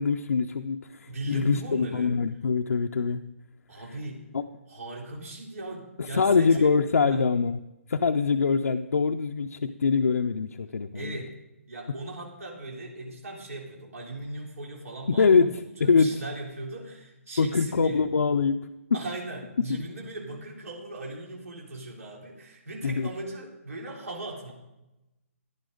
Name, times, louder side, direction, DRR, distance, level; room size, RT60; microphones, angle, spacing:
voice 1, 0.0-3.2 4.3-4.4 6.0-7.6 7.9-11.2 15.1-16.1 17.4-18.7 22.8-23.1, left 5 dB, 85° left, 5 dB, 0.6 m, -24 dB
voice 2, 1.1-2.2 3.7-4.3 4.7-6.7 7.0-7.2 10.9-11.4 11.7-18.1 18.9-24.5, right 2 dB, 75° right, -1 dB, 3.3 m, -38 dB
14.0 x 11.0 x 3.9 m, 0.95 s
hypercardioid pair, 160°, 8 cm